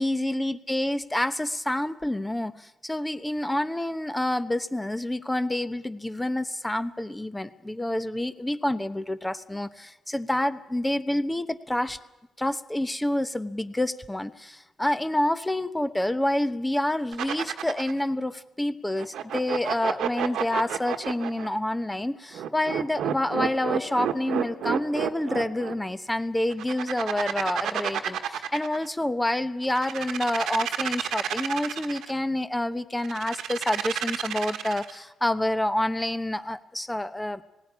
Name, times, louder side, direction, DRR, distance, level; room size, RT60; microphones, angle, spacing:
voice 1, 0.0-12.0 12.4-37.4, left 1 dB, 10° left, 12 dB, 1.0 m, -28 dB
sound 1, 17.1-18.0 19.0-21.5 22.3-25.7 26.5-28.9 29.6-32.1 33.0-35.0, right 10 dB, 75° right, 1.5 m, -30 dB
18.5 x 17.5 x 9.7 m, 0.94 s
cardioid pair, 90°, 0 cm